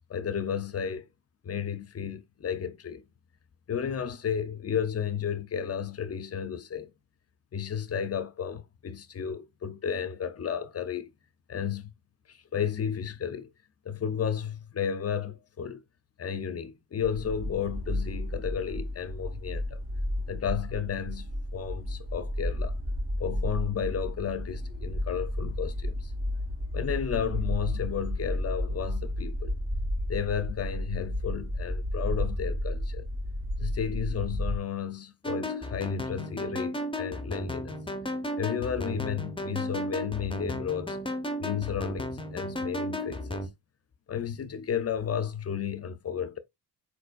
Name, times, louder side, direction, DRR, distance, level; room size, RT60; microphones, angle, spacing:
voice 1, 0.1-1.1 1.4-3.0 3.7-6.9 7.5-11.1 11.5-11.9 12.3-13.5 13.8-15.8 16.2-19.8 20.3-22.8 23.2-26.1 26.7-29.5 30.1-33.1 33.6-37.8 38.4-41.0 41.4-43.5 44.1-46.4, left 8 dB, 35° left, 0.8 m, -33 dB
sound 1, 17.0-34.6, left 1 dB, 30° right, 1.6 m, -32 dB
sound 2, 35.2-43.5, left 1 dB, 10° left, 1.0 m, -34 dB
4.3 x 4.2 x 2.5 m
hypercardioid pair, 45°, 44 cm